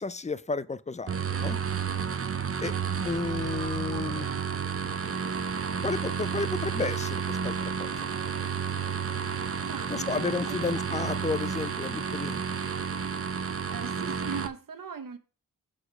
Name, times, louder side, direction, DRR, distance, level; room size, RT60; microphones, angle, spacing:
voice 1, 0.0-1.6 2.6-2.7 3.0-4.3 5.8-8.1 9.9-12.4, left 4 dB, 20° left, 0.3 m, -32 dB
sound 1, 1.1-14.5, right 6 dB, 40° right, 0.6 m, -31 dB
voice 2, 9.1-10.8 13.6-15.2, right 6 dB, 60° right, 0.9 m, -41 dB
6.2 x 5.0 x 5.9 m
wide cardioid pair, 130°, 37 cm